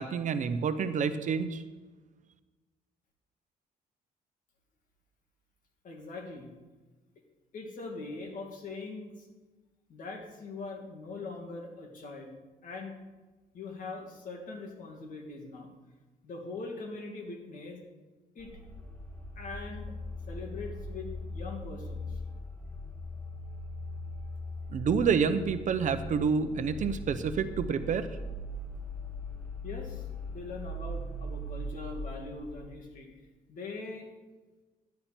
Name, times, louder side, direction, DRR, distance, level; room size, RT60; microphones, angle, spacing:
voice 1, 0.0-1.6 24.7-28.1, right 6 dB, 50° right, 10 dB, 0.8 m, -28 dB
voice 2, 5.8-6.5 7.5-9.3 9.9-12.4 12.6-13.0 13.5-15.7 16.2-17.8 18.3-18.5 19.4-19.9 20.3-22.2 29.6-33.2 33.5-34.1, left 3 dB, 55° left, 2 dB, 2.5 m, -42 dB
sound 1, 18.4-32.7, left 1 dB, 10° left, 1.6 m, -40 dB
12.0 x 10.5 x 4.4 m, 1.3 s
cardioid pair, 135°, 16 cm